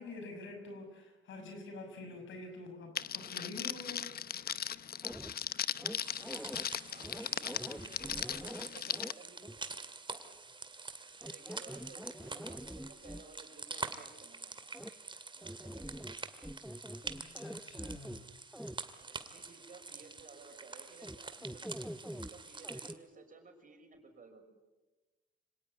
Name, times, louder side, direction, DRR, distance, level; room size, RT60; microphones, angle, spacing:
voice 1, 0.0-4.1 17.1-18.3, left 2 dB, 75° left, 6 dB, 6.0 m, -47 dB
Crackle, 3.0-9.1, left 9 dB, 50° left, 0.8 m, -38 dB
sound 1, 5.0-5.3 5.8-6.6 7.0-9.1 9.4-9.6 11.2-13.2 14.7-14.9 15.4-16.2 16.4-18.2 18.5-18.8 21.0-21.2 21.4-22.3 22.6-22.9, equal, ahead, 0.8 m, -45 dB
sound 2, 6.0-22.9, right 3 dB, 25° right, 2.2 m, -46 dB
voice 2, 6.8-9.5 10.1-10.2 11.2-14.7 15.3-16.0 19.0-21.7 22.0-24.6, right 4 dB, 40° right, 5 dB, 6.0 m, -56 dB
26.0 x 18.0 x 9.9 m, 1.2 s
cardioid pair, 90°, 20 cm